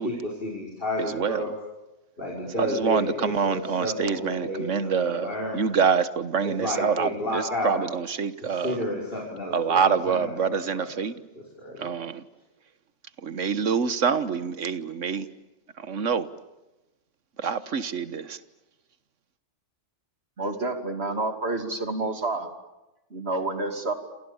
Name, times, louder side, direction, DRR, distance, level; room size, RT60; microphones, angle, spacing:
voice 1, 0.4-1.5 2.2-5.6 6.4-7.8 8.4-10.9 11.3-11.9, left 1 dB, 45° left, -3 dB, 5.9 m, -31 dB
voice 2, 1.0-1.4 2.6-8.8 9.5-11.2 11.8-12.2 13.2-15.3 15.8-16.3 17.4-18.4, right 6 dB, 80° right, 14 dB, 1.6 m, -26 dB
voice 3, 20.4-22.5 23.1-23.9, right 2 dB, 55° right, 7 dB, 3.1 m, -29 dB
28.5 x 28.0 x 7.1 m, 1.0 s
omnidirectional pair, 1.3 m